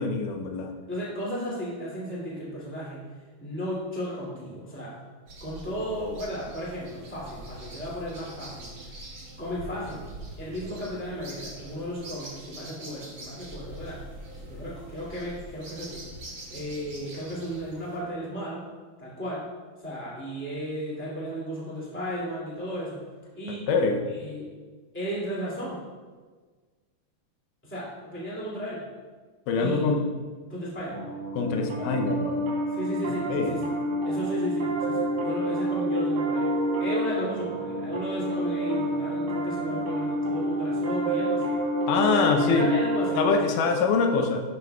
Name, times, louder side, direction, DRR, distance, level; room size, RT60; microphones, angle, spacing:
voice 1, 0.0-0.7 23.7-24.0 29.5-30.1 31.3-32.4 33.3-33.5 41.9-42.7 43.2-44.4, left 4 dB, 85° left, 4 dB, 1.9 m, -24 dB
voice 2, 0.9-3.1 3.4-5.0 5.4-8.7 9.4-10.0 10.4-14.0 14.4-16.0 16.5-18.6 19.0-19.4 19.8-23.0 23.3-23.7 24.1-24.5 24.9-25.8 27.6-28.8 29.5-29.8 30.5-31.0 31.6-31.9 32.7-33.7 34.0-36.5 36.8-41.6 42.1-43.4, equal, 5° left, -7 dB, 1.1 m, -34 dB
sound 1, 5.3-18.0, right 1 dB, 55° right, 1.4 m, -43 dB
Piano, 30.9-43.4, right 1 dB, 85° right, 1.5 m, -28 dB
12.5 x 6.1 x 2.3 m, 1.4 s
omnidirectional pair, 4.5 m